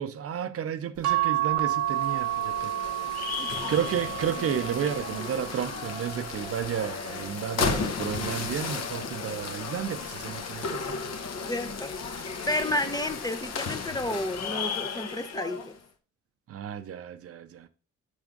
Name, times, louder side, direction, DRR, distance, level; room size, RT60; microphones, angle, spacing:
voice 1, 0.0-2.7 3.1-11.0 16.5-17.7, right 8 dB, 50° right, 0.6 m, -32 dB
sound 1, 1.0-7.7 8.3-9.7 10.9-11.4 11.7-11.8, right 13 dB, 80° right, 0.9 m, -32 dB
sound 2, 1.7-15.8, left 5 dB, 60° left, 1.1 m, -34 dB
voice 2, 3.4-3.7 11.4-15.8, left 1 dB, 15° left, 0.6 m, -32 dB
6.3 x 3.6 x 5.2 m
cardioid pair, 90°, 30 cm